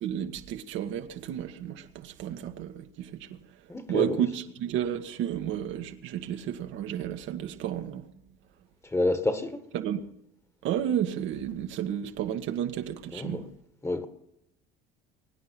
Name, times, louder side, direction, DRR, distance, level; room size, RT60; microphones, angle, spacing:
voice 1, 0.0-3.4 3.9-8.0 9.7-10.1 10.6-13.4, right 10 dB, 65° right, 1.6 m, -32 dB
voice 2, 3.7-4.2 8.9-9.6 13.1-13.5 13.8-14.1, left 2 dB, 15° left, 1.7 m, -28 dB
22.5 x 9.6 x 6.0 m
supercardioid pair, 105°, 21 cm